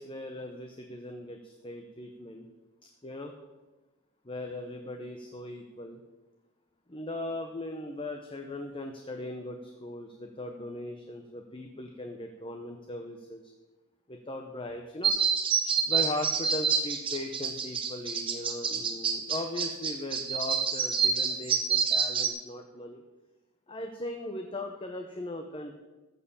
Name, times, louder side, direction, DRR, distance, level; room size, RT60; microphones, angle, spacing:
voice 1, 0.0-2.5 3.0-3.3 4.3-6.0 6.9-13.4 14.1-15.1 15.9-23.0 23.7-25.8, left 1 dB, 25° left, 4 dB, 0.8 m, -39 dB
sound 1, 15.0-22.3, right 5 dB, 25° right, 1.1 m, -28 dB
14.0 x 6.8 x 7.2 m, 1.1 s
head